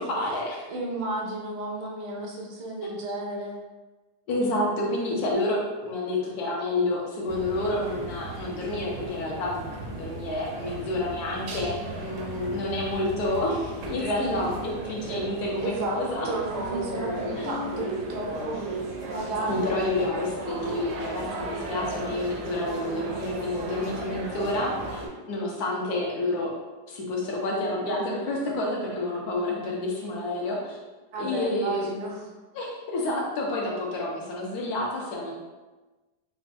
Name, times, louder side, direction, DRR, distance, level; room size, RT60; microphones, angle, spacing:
voice 1, 0.0-0.6 4.3-16.3 17.4-17.5 19.5-25.0 25.3-26.5 26.9-30.8 31.2-31.9 32.5-35.3, left 1 dB, 70° left, -2 dB, 1.2 m, -29 dB
voice 2, 0.7-3.6 14.2-14.5 15.1-15.2 15.6-16.0 16.2-18.8 19.1-19.7 31.1-32.3, right 2 dB, 90° right, 0 dB, 1.3 m, -32 dB
sound 1, 7.3-25.1, right 2 dB, 70° right, 0.8 m, -35 dB
4.1 x 2.2 x 2.6 m, 1.2 s
omnidirectional pair, 1.8 m